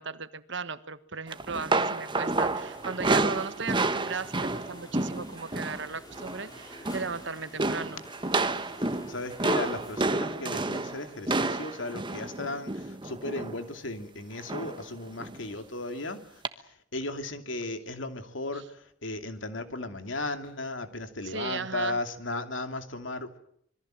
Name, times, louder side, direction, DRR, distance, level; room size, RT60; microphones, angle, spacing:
voice 1, 0.0-8.0 18.5-18.6 21.2-22.0, right 5 dB, 65° right, 12 dB, 1.4 m, -36 dB
sound 1, 1.3-5.9 6.1-6.4 6.7-7.2 7.6-13.6 14.5-14.9 15.2-15.4 16.4-16.5, right 2 dB, 25° right, 1.3 m, -30 dB
sound 2, 2.5-10.1, left 1 dB, 20° left, 4.4 m, -50 dB
voice 2, 9.1-16.4 16.9-23.4, left 2 dB, 75° left, 8 dB, 2.6 m, -35 dB
26.5 x 22.0 x 7.7 m, 0.68 s
head